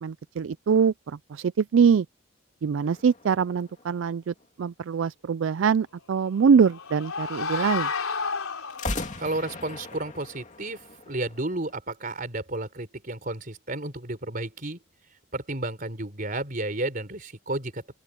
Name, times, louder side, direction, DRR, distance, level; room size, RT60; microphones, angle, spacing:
voice 1, 0.0-2.1 2.6-7.9, right 6 dB, 65° right, 0.3 m, -23 dB
sound 1, 2.8-4.6 8.7-11.8, left 2 dB, 35° left, 2.5 m, -38 dB
sound 2, 6.2-9.2, left 4 dB, 90° left, 3.8 m, -31 dB
voice 2, 9.2-14.8 15.3-17.8, right 2 dB, 40° right, 3.9 m, -32 dB
open air
head